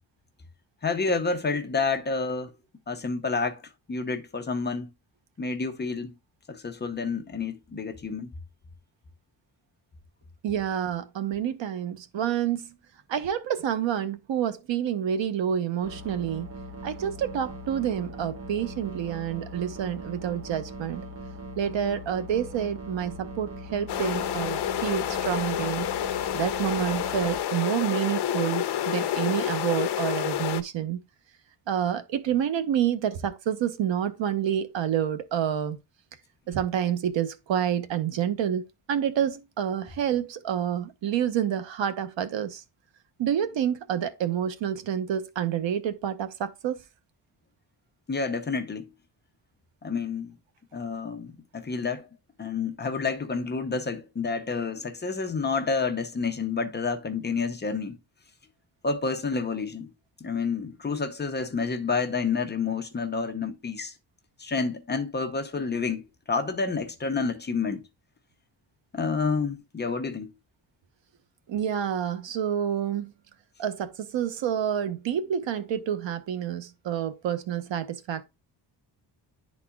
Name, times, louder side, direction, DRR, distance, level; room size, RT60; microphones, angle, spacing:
voice 1, 0.8-2.5 2.9-3.6 3.9-4.9 5.4-6.1 6.5-8.3 48.1-48.9 49.8-50.4 50.7-52.1 52.4-58.0 58.8-59.9 60.2-63.9 64.4-67.8 68.9-70.3, left 4 dB, 25° left, 0.7 m, -29 dB
voice 2, 10.4-12.7 13.1-16.5 16.8-21.1 21.6-25.9 26.3-31.0 31.7-35.8 36.5-42.6 43.2-46.8 71.5-73.1 73.6-78.2, right 9 dB, 85° right, 1.0 m, -28 dB
sound 1, 15.8-27.4, right 1 dB, 30° right, 1.2 m, -40 dB
sound 2, 23.9-30.6, left 11 dB, 70° left, 0.7 m, -29 dB
11.0 x 4.2 x 2.3 m
wide cardioid pair, 170°, 43 cm